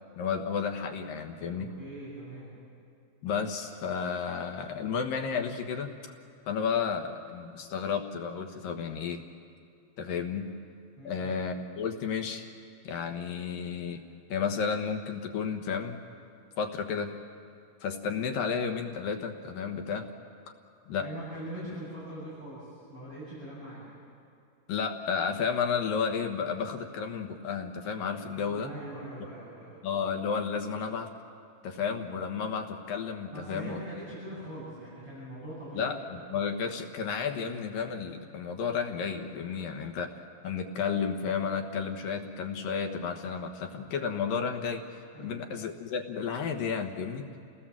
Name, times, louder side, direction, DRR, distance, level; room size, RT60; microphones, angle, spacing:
voice 1, 0.2-1.7 3.2-5.9 6.5-9.2 10.0-10.5 11.0-12.5 12.8-14.0 14.3-16.0 16.6-17.1 17.8-20.1 20.9-21.1 24.7-28.7 29.8-31.1 31.6-33.8 35.7-40.2 40.4-44.8 45.2-47.2, left 6 dB, 75° left, 4 dB, 3.0 m, -32 dB
voice 2, 1.5-2.5 11.0-11.4 21.0-23.8 28.3-29.8 33.3-35.9 45.1-45.5, right 1 dB, 40° right, -9 dB, 8.6 m, -42 dB
29.5 x 18.0 x 7.4 m, 2.5 s
omnidirectional pair, 4.1 m